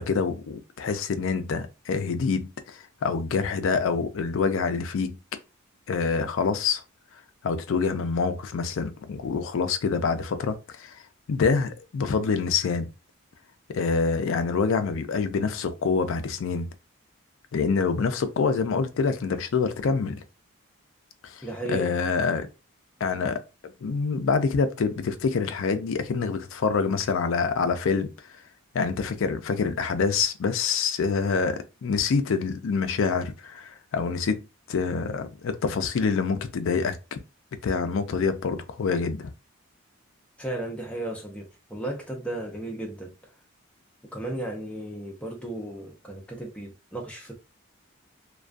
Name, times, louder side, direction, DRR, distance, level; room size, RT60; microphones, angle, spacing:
voice 1, 0.0-5.2 5.9-6.8 7.4-11.0 11.3-12.9 13.7-16.7 17.5-20.2 21.2-21.4 21.7-22.5 23.0-28.1 28.7-37.2 37.6-39.3, left 5 dB, 65° left, 0.4 m, -26 dB
voice 2, 21.4-21.9 40.4-43.1 44.1-47.4, right 1 dB, 5° left, 0.5 m, -34 dB
2.3 x 2.2 x 2.4 m
head